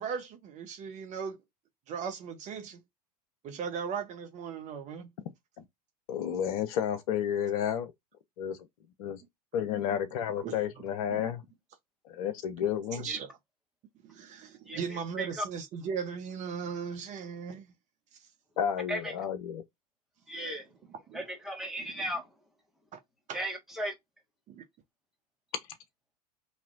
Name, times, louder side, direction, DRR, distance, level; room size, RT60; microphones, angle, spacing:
voice 1, 0.0-1.4 1.9-2.8 3.4-5.1 10.4-10.6 11.1-11.3 12.9-13.3 14.0-17.7 21.1-21.3 21.9-22.0 22.9-23.0 23.3-23.4 24.5-24.6, right 6 dB, 35° right, 0.9 m, -37 dB
voice 2, 6.1-7.9 8.4-8.6 9.0-9.2 9.5-11.4 12.0-13.1 18.6-19.6, left 9 dB, 60° left, 0.8 m, -31 dB
voice 3, 14.7-15.4 18.9-19.1 20.3-20.7 21.1-22.3 23.3-23.9, right 1 dB, ahead, 1.5 m, -36 dB
4.2 x 2.9 x 2.5 m
figure-of-eight pair, 85°, 21 cm